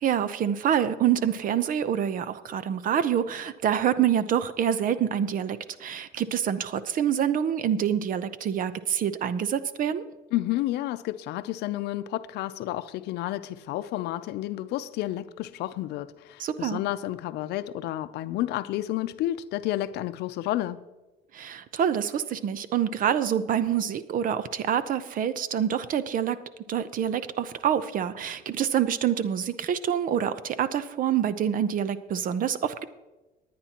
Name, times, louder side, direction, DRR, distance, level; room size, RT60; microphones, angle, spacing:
voice 1, 0.0-10.0 16.4-16.8 21.3-26.4 26.7-32.8, right 9 dB, 55° right, 0.7 m, -26 dB
voice 2, 10.3-20.9, left 14 dB, 80° left, 0.6 m, -31 dB
20.5 x 9.4 x 2.9 m
cardioid pair, 110°, 17 cm